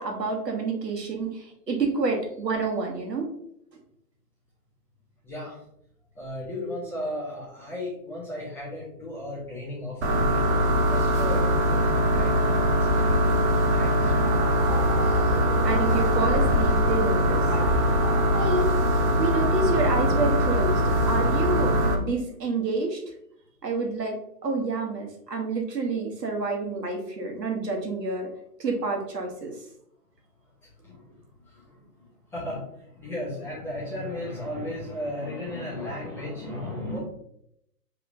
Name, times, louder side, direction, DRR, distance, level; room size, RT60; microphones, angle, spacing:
voice 1, 0.0-3.3 15.0-15.2 15.6-17.4 18.3-18.7 19.1-21.7 22.0-23.0 23.6-24.2 24.4-28.3 28.6-29.5, right 3 dB, 85° right, 2 dB, 1.4 m, -28 dB
voice 2, 5.2-5.6 6.1-13.1 13.7-14.3 30.6-31.2 31.5-32.0 32.3-37.0, left 1 dB, 5° left, -8 dB, 1.0 m, -35 dB
sound 1, 10.0-22.0, equal, 45° right, 0.8 m, -22 dB
sound 2, 13.9-18.9, left 1 dB, 30° left, 1.7 m, -40 dB
5.6 x 3.5 x 2.7 m, 0.75 s
hypercardioid pair, 140°, 48 cm